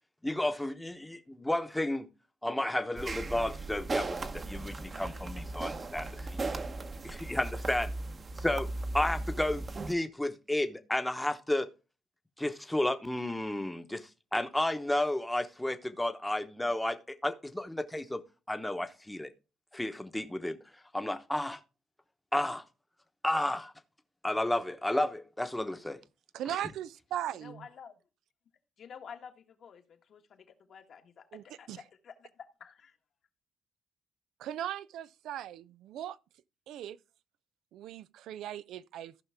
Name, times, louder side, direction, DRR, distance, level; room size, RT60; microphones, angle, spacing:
voice 1, 0.2-2.1 2.4-6.4 7.0-7.9 8.4-8.7 8.9-11.7 12.4-18.2 18.5-19.3 19.7-20.6 20.9-21.6 22.3-22.6 23.2-23.7 24.2-26.0, left 1 dB, 10° left, 1.0 m, -32 dB
sound 1, 3.0-9.9, right 2 dB, 35° right, 1.0 m, -37 dB
voice 2, 26.3-27.7 31.3-31.8 34.4-36.2 36.7-37.0 37.7-39.1, right 11 dB, 80° right, 0.4 m, -38 dB
voice 3, 27.4-27.9 28.8-32.9, left 7 dB, 60° left, 1.5 m, -50 dB
14.5 x 5.6 x 3.5 m
cardioid pair, 90°, 0 cm